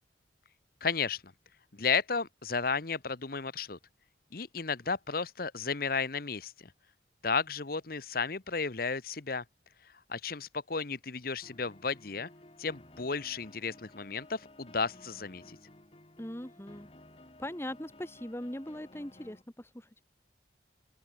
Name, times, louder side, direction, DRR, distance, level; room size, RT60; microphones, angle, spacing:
voice 1, 0.8-1.2 1.7-3.8 4.3-6.7 7.2-9.4 10.1-12.3 12.6-15.6, left 5 dB, 50° left, 1.0 m, -33 dB
sound 1, 11.4-19.4, left 1 dB, 30° left, 2.1 m, -55 dB
voice 2, 16.2-16.9 17.4-20.0, left 1 dB, 15° left, 1.3 m, -40 dB
open air
head